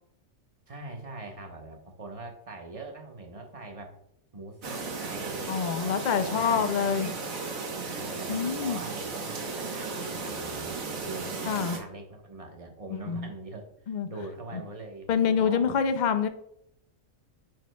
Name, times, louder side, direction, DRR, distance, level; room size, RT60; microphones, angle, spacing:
voice 1, 0.7-4.0 4.3-7.1 7.8-15.7, right 2 dB, 30° right, 3 dB, 1.0 m, -43 dB
Chirp tweet, 4.6-11.8, right 4 dB, 80° right, 1.5 m, -35 dB
voice 2, 5.5-7.1 8.3-8.8 11.4-11.8 13.1-13.3 13.9-14.1 15.1-16.3, left 7 dB, 80° left, 9 dB, 0.4 m, -26 dB
9.0 x 4.7 x 2.2 m, 0.75 s
omnidirectional pair, 1.4 m